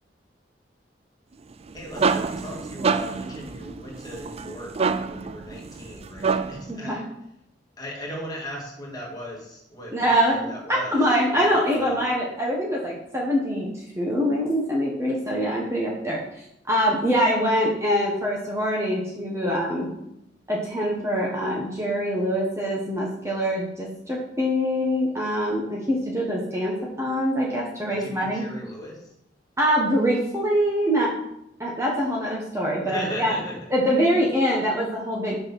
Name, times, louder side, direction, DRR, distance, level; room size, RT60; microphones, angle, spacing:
sound 1, 1.5-6.7, right 5 dB, 35° right, 0.4 m, -27 dB
voice 1, 1.7-7.0 7.8-11.0 11.3-12.1 27.9-29.1 32.8-33.6, left 1 dB, 20° left, -2 dB, 2.3 m, -37 dB
voice 2, 6.7-7.0 9.9-10.4 10.9-13.7 13.9-16.2 16.7-19.9 20.5-28.4 29.6-31.1 31.6-33.3 33.7-35.4, equal, 15° right, -3 dB, 1.5 m, -24 dB
6.6 x 5.7 x 6.2 m, 0.80 s
head